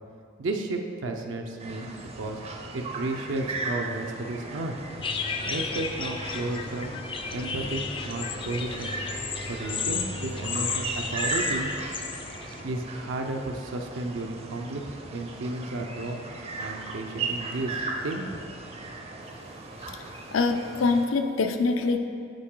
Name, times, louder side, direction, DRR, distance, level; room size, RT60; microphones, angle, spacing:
voice 1, 0.4-2.4 2.7-4.8 5.5-6.9 7.3-8.9 9.5-11.7 12.6-16.2 16.6-18.3, right 2 dB, 75° right, 3 dB, 0.5 m, -33 dB
sound 1, 1.6-21.1, right 3 dB, 30° right, 0.5 m, -37 dB
sound 2, 5.0-12.6, left 5 dB, 25° left, 0.3 m, -33 dB
voice 2, 20.3-22.0, left 4 dB, 90° left, 6 dB, 0.5 m, -24 dB
8.7 x 4.6 x 3.7 m, 2.6 s
head